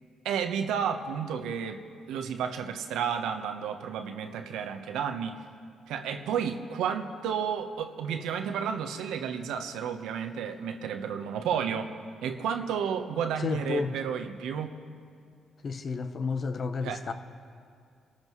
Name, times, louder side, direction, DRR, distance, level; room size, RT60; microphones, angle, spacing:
voice 1, 0.2-5.4 5.9-11.9 12.2-14.7 16.8-17.1, right 7 dB, 90° right, 1.0 m, -32 dB
voice 2, 13.4-13.9 15.6-17.1, left 4 dB, 45° left, 0.8 m, -31 dB
28.0 x 13.5 x 3.1 m
cardioid pair, 90°, 0 cm